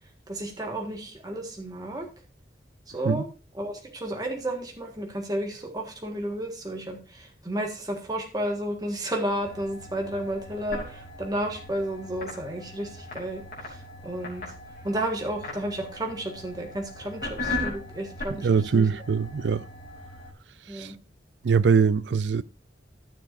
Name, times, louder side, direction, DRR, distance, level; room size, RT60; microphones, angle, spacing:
voice 1, 0.3-2.1 2.9-3.3 3.5-14.5 14.8-18.5 18.7-18.9 20.7-20.9, right 1 dB, 25° right, 1.6 m, -32 dB
sound 1, 9.4-20.3, left 2 dB, 50° left, 3.3 m, -38 dB
voice 2, 18.4-19.6 20.7-20.9 21.4-22.4, right 5 dB, 90° right, 0.4 m, -22 dB
13.0 x 7.0 x 2.6 m
head